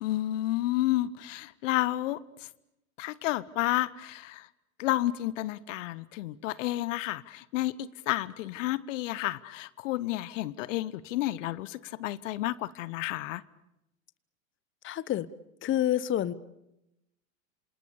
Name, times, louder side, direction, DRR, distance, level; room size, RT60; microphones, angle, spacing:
voice 1, 0.0-2.5 3.0-4.5 4.8-13.4, left 16 dB, 65° left, 1.0 m, -31 dB
voice 2, 14.8-15.3 15.6-16.3, left 12 dB, 30° left, 1.0 m, -28 dB
28.0 x 27.0 x 7.0 m
hypercardioid pair, 90°, 41 cm